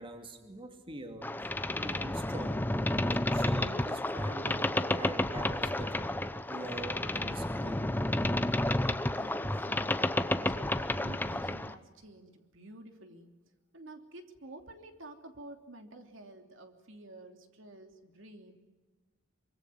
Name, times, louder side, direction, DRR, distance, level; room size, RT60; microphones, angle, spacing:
voice 1, 0.0-2.7 3.0-6.2 6.5-8.0, right 1 dB, 25° right, 5 dB, 2.4 m, -44 dB
Boat Water vehicle, 1.2-11.7, left 1 dB, 10° left, 0.8 m, -31 dB
voice 2, 9.1-13.4 13.7-18.6, right 2 dB, 70° right, 5 dB, 3.0 m, -50 dB
24.5 x 24.0 x 9.4 m, 1.3 s
head